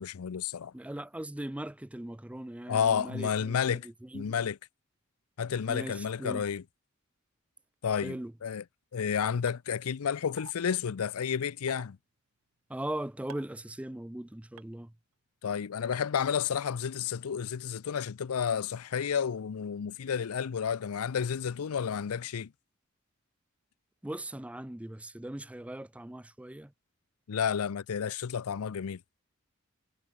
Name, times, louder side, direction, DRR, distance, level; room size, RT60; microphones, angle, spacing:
voice 1, 0.0-0.7 2.7-3.9 4.1-4.6 5.4-6.6 7.8-8.6 8.9-12.0 15.4-22.5 27.3-29.0, left 7 dB, 90° left, 0.5 m, -31 dB
voice 2, 0.7-4.4 5.7-6.4 8.0-8.3 12.7-14.9 24.0-26.7, right 1 dB, 5° right, 0.4 m, -39 dB
sound 1, 9.5-9.6 10.4-10.5 11.7-11.8 13.3-13.5 14.6-14.7 15.9-16.0, right 5 dB, 85° right, 1.9 m, -46 dB
head